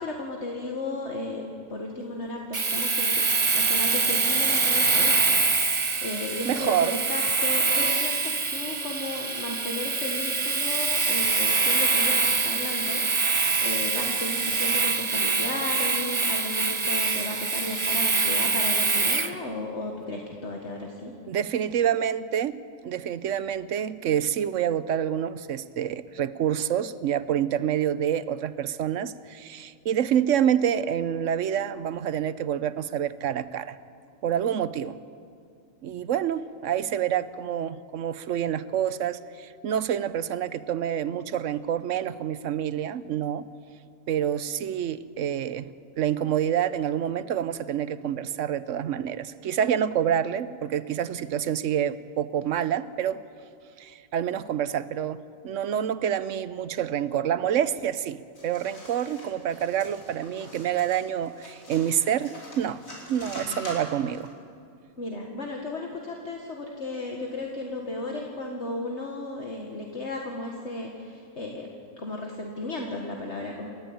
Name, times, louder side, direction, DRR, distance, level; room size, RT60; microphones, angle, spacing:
voice 1, 0.0-3.1 3.5-5.4 6.0-21.1 63.4-63.7 65.0-71.7 72.0-73.7, left 2 dB, 55° left, 0 dB, 2.0 m, -34 dB
Domestic sounds home sounds, 2.5-19.3, right 4 dB, 25° right, 0.9 m, -24 dB
voice 2, 6.4-7.0 21.3-33.8 34.2-35.0 35.8-43.5 44.1-53.2 53.8-62.8 63.1-64.3, right 9 dB, 65° right, 15 dB, 1.1 m, -27 dB
sound 1, 58.4-64.3, left 1 dB, 75° left, 5.3 m, -44 dB
28.5 x 13.5 x 8.9 m, 2.4 s
omnidirectional pair, 1.4 m